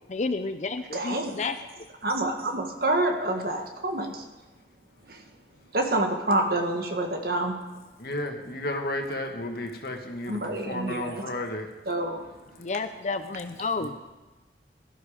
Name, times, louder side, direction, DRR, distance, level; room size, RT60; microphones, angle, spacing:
voice 1, 0.1-1.9 12.6-13.9, left 3 dB, 40° left, 9 dB, 0.6 m, -31 dB
voice 2, 0.9-1.3 2.0-4.2 5.1-5.2 5.7-7.6 10.3-11.2 11.9-12.2, right 1 dB, 60° right, 4 dB, 1.7 m, -27 dB
voice 3, 8.0-11.7 12.5-12.7 13.8-13.9, left 1 dB, 60° left, 3 dB, 1.8 m, -33 dB
17.0 x 12.0 x 5.1 m, 1.2 s
head